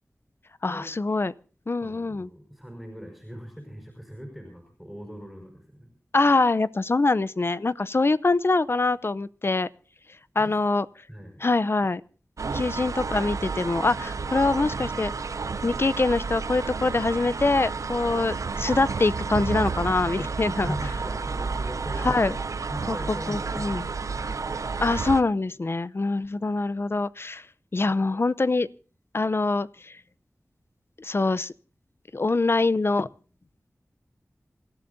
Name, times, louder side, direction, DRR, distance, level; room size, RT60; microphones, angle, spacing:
voice 1, 0.6-1.3 1.7-2.3 6.1-9.7 10.4-10.9 11.4-12.0 12.5-15.1 15.6-20.7 22.0-22.3 22.9-23.9 24.8-27.5 27.7-28.7 29.1-30.0 31.0-31.5 32.1-33.1, left 3 dB, 45° left, 17 dB, 0.6 m, -24 dB
voice 2, 1.8-5.9 10.4-10.6 11.1-11.5 12.5-12.6 20.6-22.3 22.6-24.3, equal, ahead, 2 dB, 5.2 m, -40 dB
sound 1, 12.4-25.2, right 4 dB, 80° right, 0.6 m, -31 dB
27.5 x 13.5 x 2.7 m, 0.38 s
wide cardioid pair, 65°, 5 cm